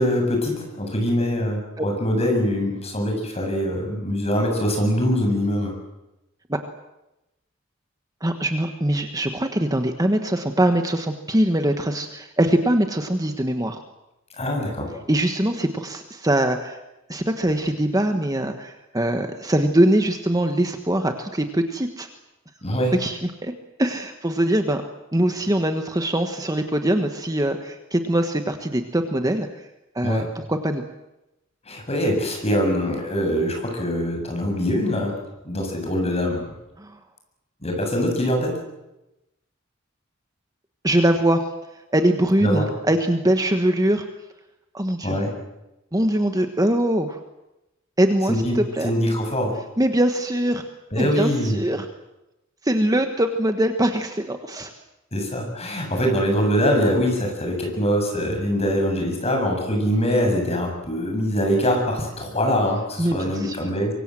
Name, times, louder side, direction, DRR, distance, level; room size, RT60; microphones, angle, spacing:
voice 1, 0.0-5.7 14.4-14.9 22.6-22.9 30.0-30.2 31.7-35.1 35.4-36.4 37.6-38.5 42.4-42.7 45.0-45.3 48.3-48.6 48.8-49.5 50.9-51.6 55.1-63.9, equal, 30° left, 2 dB, 7.5 m, -23 dB
voice 2, 8.2-13.8 15.1-16.8 17.1-22.1 22.9-23.5 23.8-24.8 25.1-29.5 29.9-30.8 36.8-37.0 40.8-41.5 41.9-44.0 44.7-45.2 45.9-47.2 48.0-48.9 49.8-50.6 51.0-51.9 52.6-54.7 63.0-63.6, right 1 dB, 20° right, 6 dB, 1.4 m, -22 dB
24.5 x 23.5 x 7.8 m, 0.94 s
head